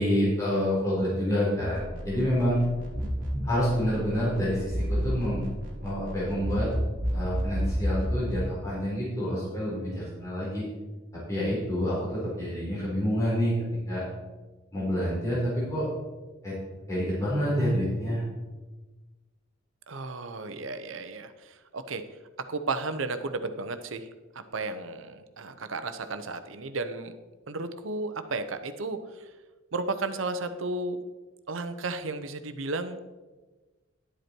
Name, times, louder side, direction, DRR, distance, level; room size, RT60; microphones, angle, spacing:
voice 1, 0.0-2.6 3.4-5.5 5.8-6.7 7.1-10.6 11.3-13.5 13.9-14.0 14.7-15.8 16.4-16.6 16.9-18.3, equal, 15° left, -8 dB, 4.2 m, -28 dB
sound 1, 1.7-8.5, equal, 45° right, 2.4 m, -31 dB
voice 2, 19.9-22.0 22.4-24.1 24.3-27.1 27.5-29.3 29.7-31.0 31.5-33.0, right 3 dB, 75° right, 10 dB, 0.9 m, -33 dB
11.5 x 8.2 x 4.5 m, 1.2 s
head